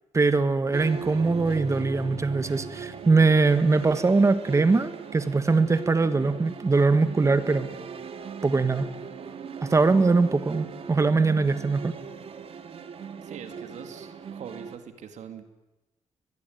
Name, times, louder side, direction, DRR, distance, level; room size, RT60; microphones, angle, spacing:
voice 1, 0.1-7.7 8.4-8.9 9.6-11.9, right 3 dB, 25° right, 12 dB, 1.7 m, -22 dB
sound 1, 0.7-14.8, right 6 dB, 50° right, 2.2 m, -39 dB
voice 2, 13.2-15.4, right 7 dB, 75° right, 8 dB, 2.3 m, -42 dB
22.5 x 22.0 x 9.5 m, 1.0 s
cardioid pair, 125°, 12 cm